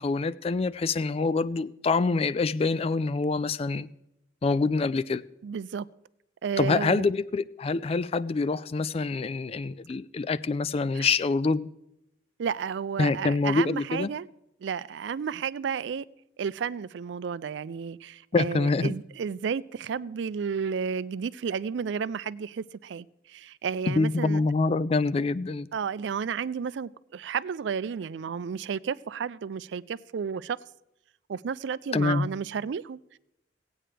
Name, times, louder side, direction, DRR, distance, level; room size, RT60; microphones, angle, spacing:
voice 1, 0.0-3.9 4.4-5.2 6.6-11.7 13.0-14.1 18.3-18.9 23.9-25.7 31.9-32.3, left 3 dB, 30° left, 0.3 m, -26 dB
voice 2, 5.4-5.9 6.4-7.1 10.9-11.1 12.4-14.3 14.6-16.0 16.4-24.4 25.7-30.6 31.3-33.2, right 6 dB, 70° right, 0.4 m, -32 dB
18.0 x 8.8 x 3.3 m
head